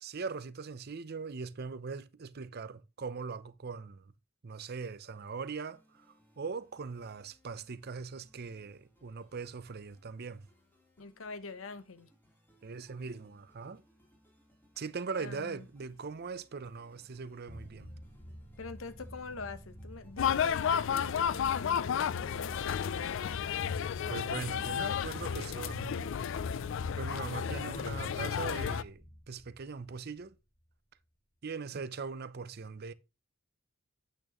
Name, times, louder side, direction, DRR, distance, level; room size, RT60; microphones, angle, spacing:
voice 1, 0.0-4.1 4.4-6.1 6.4-10.4 12.6-13.8 14.8-17.9 24.1-26.3 27.0-29.0 29.3-30.3 31.4-32.9, right 5 dB, 50° right, 0.6 m, -41 dB
sound 1, 5.1-24.5, equal, 10° left, 3.4 m, -67 dB
voice 2, 11.0-12.1 15.2-15.7 18.6-23.1, left 4 dB, 85° left, 0.9 m, -44 dB
sound 2, 17.5-30.3, equal, 35° left, 2.0 m, -50 dB
sound 3, 20.2-28.8, left 8 dB, 65° left, 0.4 m, -32 dB
8.6 x 8.6 x 3.0 m
head